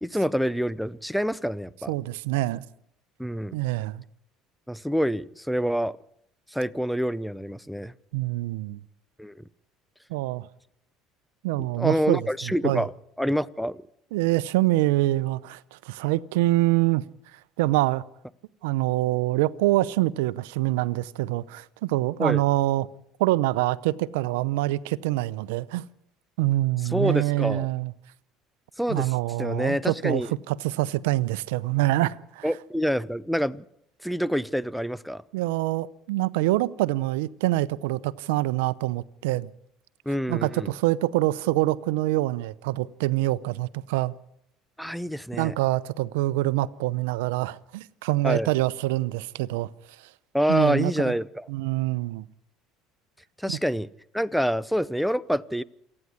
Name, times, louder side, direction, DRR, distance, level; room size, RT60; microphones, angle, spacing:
voice 1, 0.0-1.9 3.2-3.5 4.7-6.0 6.5-7.9 9.2-9.3 11.6-13.8 22.2-22.4 26.9-27.7 28.8-29.1 29.4-30.3 32.4-33.6 34.0-35.2 40.1-40.7 44.8-45.5 48.2-48.5 50.3-51.5 53.4-53.9 54.1-55.6, equal, ahead, 0.7 m, -27 dB
voice 2, 1.9-2.6 3.5-4.0 8.1-8.8 10.1-10.5 11.4-12.9 14.1-17.0 17.3-18.0 18.6-22.9 23.2-25.8 26.4-27.9 28.9-30.2 30.5-32.5 35.3-39.5 40.3-44.1 45.4-49.7 50.0-50.1 50.5-51.1 51.5-52.2, right 17 dB, 90° right, 0.7 m, -25 dB
27.5 x 9.9 x 9.6 m
supercardioid pair, 95°, 0 cm